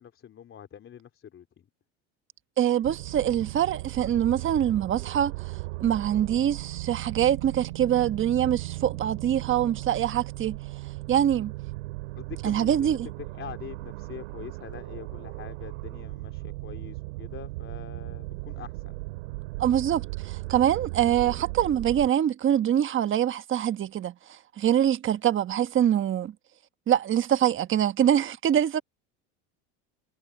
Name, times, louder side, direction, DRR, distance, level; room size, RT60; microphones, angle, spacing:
voice 1, 0.0-1.7 12.2-18.9 21.1-21.2, left 9 dB, 35° left, 3.5 m, -44 dB
voice 2, 2.6-10.6 11.1-11.5 12.4-13.1 19.6-26.3 26.9-28.8, right 10 dB, 35° right, 1.3 m, -24 dB
sound 1, 2.8-22.1, right 23 dB, 90° right, 2.1 m, -37 dB
supercardioid pair, 115°, 35 cm